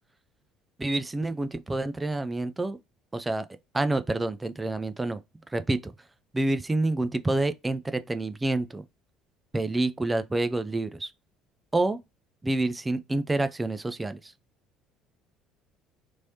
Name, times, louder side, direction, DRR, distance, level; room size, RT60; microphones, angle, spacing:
voice 1, 0.8-2.8 3.1-3.5 3.7-5.2 5.5-5.9 6.3-8.9 9.5-11.1 11.7-12.0 12.4-14.3, right 2 dB, 15° right, 0.4 m, -28 dB
3.1 x 2.7 x 2.7 m
figure-of-eight pair, 55°, 0 cm